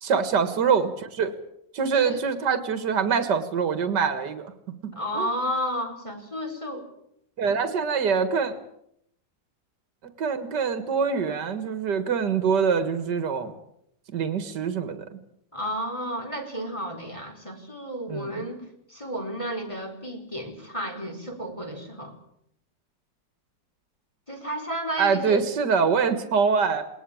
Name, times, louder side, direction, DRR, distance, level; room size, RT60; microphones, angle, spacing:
voice 1, 0.0-1.3 1.7-4.5 4.8-5.3 7.4-8.6 10.2-13.5 14.1-15.2 18.1-18.3 25.0-26.9, right 6 dB, 70° right, 10 dB, 2.3 m, -24 dB
voice 2, 4.9-6.9 7.4-7.5 15.5-22.1 24.3-25.4, equal, 15° left, 2 dB, 4.5 m, -32 dB
20.5 x 19.5 x 8.7 m, 0.73 s
omnidirectional pair, 1.9 m